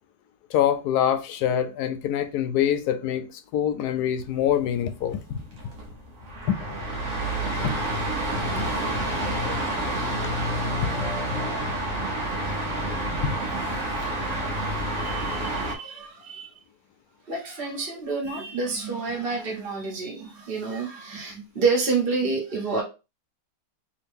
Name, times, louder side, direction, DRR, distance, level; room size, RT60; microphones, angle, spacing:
voice 1, 0.5-5.4 6.5-6.6 7.5-7.8 8.6-8.8 10.8-11.1 13.2-13.4, left 9 dB, 80° left, 1.1 m, -25 dB
sound 1, 4.2-15.8, right 1 dB, 60° right, 1.1 m, -28 dB
voice 2, 13.9-16.5 17.3-22.8, right 4 dB, 35° right, 1.3 m, -29 dB
3.0 x 2.9 x 3.4 m
omnidirectional pair, 1.7 m